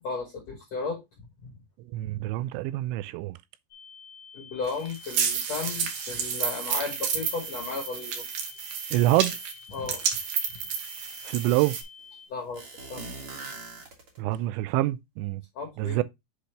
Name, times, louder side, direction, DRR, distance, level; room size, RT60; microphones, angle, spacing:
voice 1, 0.0-1.0 1.4-1.5 4.3-8.3 9.7-10.0 12.3-13.1 15.5-16.0, left 4 dB, 85° left, 1.4 m, -34 dB
voice 2, 1.9-3.4 8.9-9.4 11.3-11.8 14.2-15.4 15.8-16.0, right 16 dB, 90° right, 2.8 m, -26 dB
Ear Ringing Sound, 3.7-12.3, left 7 dB, 60° left, 1.2 m, -49 dB
grapefruit squish, 4.7-11.8, right 7 dB, 70° right, 3.0 m, -31 dB
sound 1, 10.1-10.2 10.5-11.7 12.5-14.4, right 3 dB, 50° right, 1.6 m, -42 dB
7.9 x 4.2 x 3.1 m
omnidirectional pair, 5.1 m